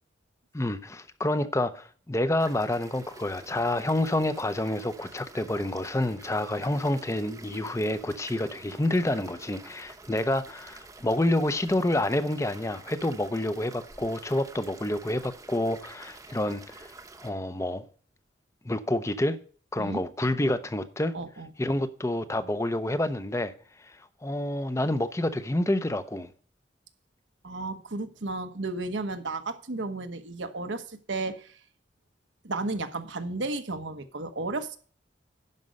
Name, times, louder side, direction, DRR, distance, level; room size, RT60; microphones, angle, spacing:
voice 1, 0.5-16.9 17.2-17.8 18.6-19.4 19.7-21.1 21.6-23.5 23.8-26.3, left 1 dB, 15° left, 0.6 m, -28 dB
sound 1, 2.4-17.3, right 3 dB, 20° right, 0.8 m, -49 dB
voice 2, 21.1-21.5 27.4-31.5 32.4-34.8, right 3 dB, 85° right, 1.1 m, -33 dB
11.0 x 5.3 x 6.3 m
head